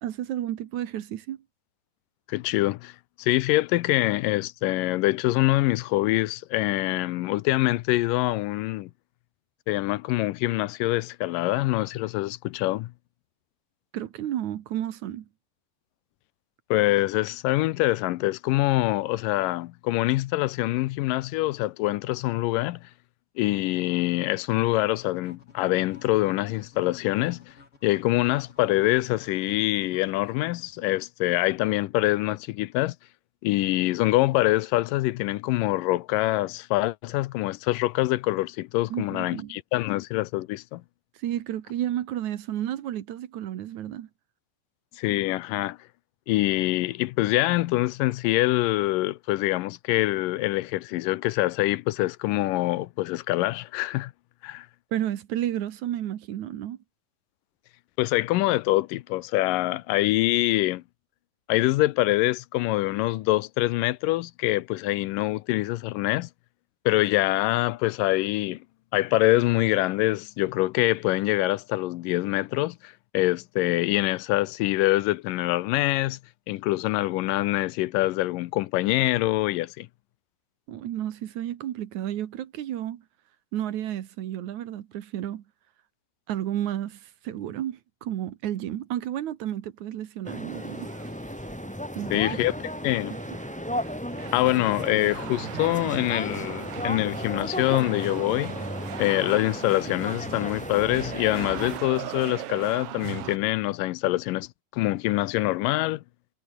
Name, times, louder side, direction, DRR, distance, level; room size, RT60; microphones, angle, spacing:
voice 1, 0.0-1.4 13.9-15.3 38.9-39.6 41.2-44.1 54.9-56.8 80.7-83.0 83.5-85.4 86.3-90.9 92.0-92.2, right 12 dB, 65° right, 2.5 m, -32 dB
voice 2, 2.3-8.9 9.7-12.9 16.7-22.9 23.4-27.5 27.8-33.0 33.4-40.8 45.0-45.8 46.3-54.1 54.4-54.7 58.0-60.8 61.5-66.3 66.9-68.6 68.9-76.2 76.5-79.9 92.1-92.6 92.8-93.1 94.3-98.6 99.0-106.0, left 18 dB, 85° left, 2.4 m, -25 dB
sound 1, 25.1-31.0, left 4 dB, 40° left, 5.3 m, -54 dB
sound 2, 90.2-101.8, equal, ahead, 2.4 m, -35 dB
sound 3, 90.5-103.4, right 13 dB, 85° right, 1.3 m, -40 dB
omnidirectional pair, 3.8 m